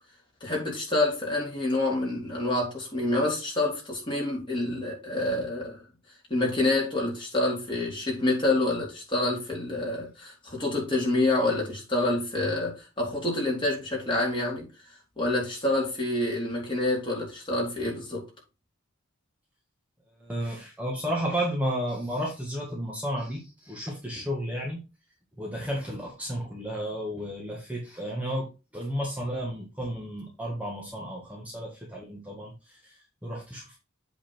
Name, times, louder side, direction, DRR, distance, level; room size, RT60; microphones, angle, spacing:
voice 1, 0.4-5.8 6.3-14.7 15.2-18.3, left 2 dB, 25° left, 3.5 m, -27 dB
voice 2, 20.2-24.8 25.4-28.5 28.7-33.8, equal, 5° right, 1.6 m, -32 dB
8.1 x 4.3 x 4.4 m
head